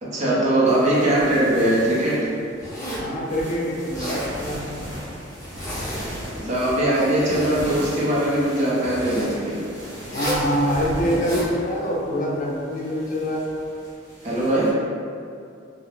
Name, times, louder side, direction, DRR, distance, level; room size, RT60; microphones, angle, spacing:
voice 1, 0.0-2.3 6.4-9.6 14.2-14.8, right 1 dB, 40° right, -7 dB, 0.6 m, -21 dB
sound 1, 0.6-14.7, equal, 60° right, 0.9 m, -38 dB
Zipper (clothing), 2.6-3.1 3.8-4.3 5.3-6.1 6.7-7.7 8.8-9.3 10.0-10.5 11.0-11.5, equal, 20° left, 0.8 m, -32 dB
voice 2, 2.9-4.6 10.1-13.5, equal, 45° left, -4 dB, 0.5 m, -25 dB
2.4 x 2.0 x 3.2 m, 2.4 s
head